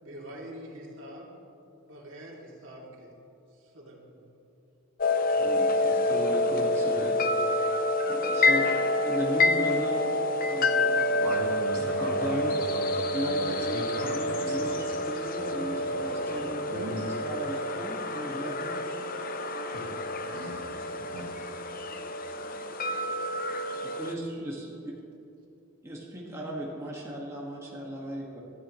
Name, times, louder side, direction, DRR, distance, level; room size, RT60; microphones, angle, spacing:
voice 1, 0.0-1.3 1.9-3.1 3.5-4.3, equal, 55° right, -3 dB, 2.9 m, -45 dB
sound 1, 5.0-24.2, left 2 dB, 40° left, 0.7 m, -28 dB
voice 2, 5.3-7.6 8.1-8.7 9.0-10.1 10.4-11.0 11.8-12.5 13.1-18.8 23.8-24.8 25.8-28.4, equal, 15° right, -4 dB, 1.8 m, -36 dB
voice 3, 11.2-14.8 15.4-17.1 19.7-19.9 20.3-20.7 21.1-21.3, right 1 dB, 90° right, -2 dB, 2.3 m, -38 dB
21.5 x 13.0 x 3.2 m, 2.8 s
head